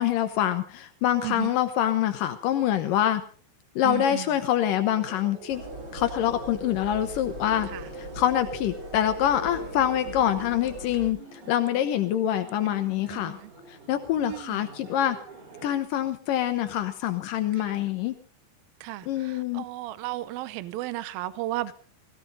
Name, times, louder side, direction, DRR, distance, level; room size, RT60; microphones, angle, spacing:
voice 1, 0.0-3.2 3.8-5.6 5.9-7.7 8.0-11.2 11.5-13.4 13.9-15.2 15.6-18.1 19.1-19.6, left 11 dB, 85° left, 1.9 m, -25 dB
voice 2, 1.2-1.6 3.8-4.3 7.7-7.8 12.7-13.5 14.2-14.7 17.6-17.8 18.8-21.7, right 16 dB, 75° right, 2.2 m, -34 dB
Laughter, 4.9-15.8, right 3 dB, 55° right, 6.1 m, -48 dB
sound 1, 5.5-11.1, right 1 dB, 25° right, 3.9 m, -39 dB
17.5 x 17.0 x 4.0 m
omnidirectional pair, 5.2 m